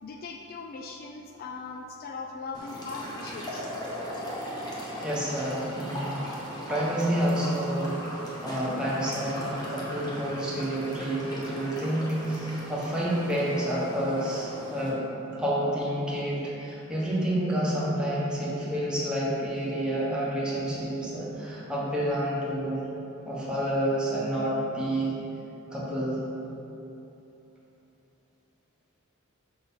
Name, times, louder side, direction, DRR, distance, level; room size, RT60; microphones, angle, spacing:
voice 1, 0.0-3.7, left 4 dB, 45° left, 2 dB, 0.3 m, -39 dB
sound 1, 2.5-14.9, equal, 20° left, 1.1 m, -38 dB
voice 2, 5.0-6.3 6.6-8.0 8.4-15.0 15.3-22.8 23.2-25.1 25.7-26.2, right 1 dB, 5° right, -7 dB, 1.2 m, -29 dB
5.9 x 3.9 x 5.5 m, 3.0 s
head